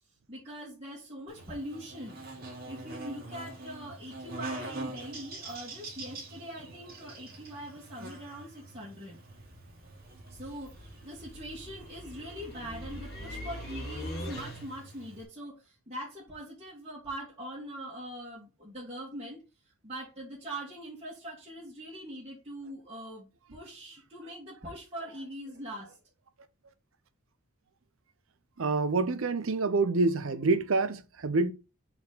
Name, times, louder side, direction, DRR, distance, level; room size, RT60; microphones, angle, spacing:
voice 1, 0.3-2.2 2.7-9.2 10.3-10.7 11.0-19.4 19.8-26.0, right 1 dB, 25° right, 2.0 m, -42 dB
Buzz, 1.3-15.2, right 2 dB, 45° right, 1.8 m, -45 dB
sound 1, 9.3-14.9, left 1 dB, 45° left, 2.0 m, -42 dB
voice 2, 28.6-31.5, right 3 dB, 65° right, 0.6 m, -27 dB
4.3 x 4.2 x 5.5 m
head